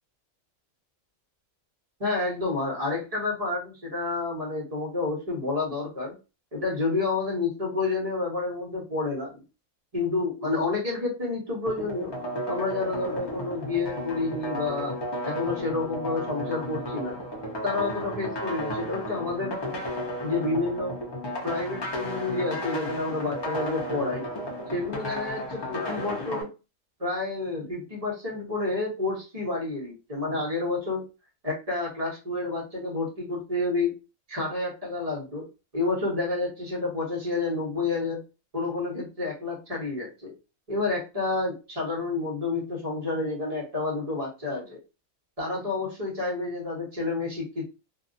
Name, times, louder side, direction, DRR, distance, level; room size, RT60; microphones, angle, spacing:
voice 1, 2.0-6.1 6.5-9.4 9.9-12.1 12.5-15.0 15.2-17.2 17.6-19.8 20.2-21.0 21.4-24.3 24.7-26.5 27.0-31.0 31.4-33.9 34.3-35.4 35.7-38.2 38.5-40.3 40.7-44.8 45.4-47.7, left 3 dB, 30° right, -3 dB, 1.2 m, -29 dB
sound 1, 11.7-26.4, equal, 35° left, 0.4 m, -33 dB
2.7 x 2.6 x 2.6 m, 0.31 s
omnidirectional pair, 1.4 m